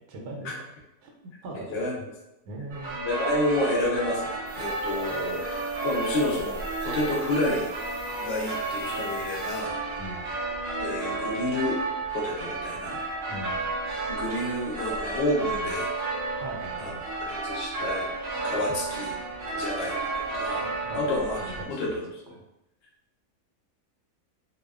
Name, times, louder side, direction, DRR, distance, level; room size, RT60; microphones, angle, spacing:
voice 1, 0.1-0.6 1.0-1.8 2.4-3.0 5.1-5.2 10.0-10.2 13.3-13.6 16.4-17.3 20.9-22.0, right 1 dB, 80° right, 0 dB, 1.1 m, -40 dB
sound 1, 2.7-21.6, right 3 dB, 60° right, 0.7 m, -32 dB
voice 2, 3.0-7.7 8.2-9.8 10.8-11.8 12.1-13.0 14.1-15.9 16.8-16.9 17.2-18.0 18.4-19.2 19.5-20.7 20.9-21.4 21.7-22.0, left 2 dB, 80° left, -4 dB, 0.5 m, -29 dB
sound 2, 4.4-9.6, equal, 15° right, 0.5 m, -49 dB
2.7 x 2.2 x 2.2 m, 0.91 s
omnidirectional pair, 1.7 m